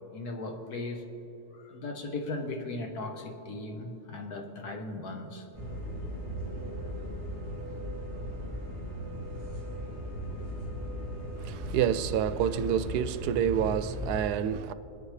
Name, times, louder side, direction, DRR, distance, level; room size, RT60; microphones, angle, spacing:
voice 1, 0.1-1.0 1.5-5.5, left 2 dB, 75° left, 1.7 m, -37 dB
sound 1, 5.5-14.2, equal, 45° left, 3.7 m, -37 dB
voice 2, 11.4-14.7, right 9 dB, 85° right, 1.1 m, -28 dB
22.0 x 9.8 x 3.3 m
omnidirectional pair, 1.7 m